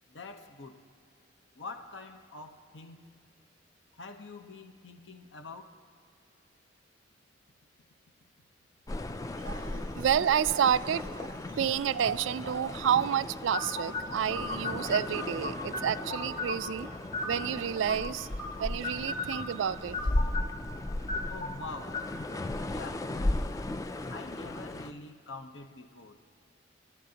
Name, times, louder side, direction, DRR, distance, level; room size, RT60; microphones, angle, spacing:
voice 1, 0.1-0.8 1.6-3.0 3.9-5.7 21.3-22.1 22.6-23.1 24.1-26.2, left 3 dB, 80° left, 6 dB, 1.0 m, -45 dB
sound 1, 8.9-24.9, left 1 dB, 20° left, 0.3 m, -36 dB
voice 2, 9.4-16.9 17.2-18.3 18.6-20.0, right 8 dB, 85° right, 16 dB, 0.3 m, -29 dB
sound 2, 13.5-23.0, left 3 dB, 50° left, 3.3 m, -38 dB
29.0 x 12.0 x 2.9 m, 2.3 s
head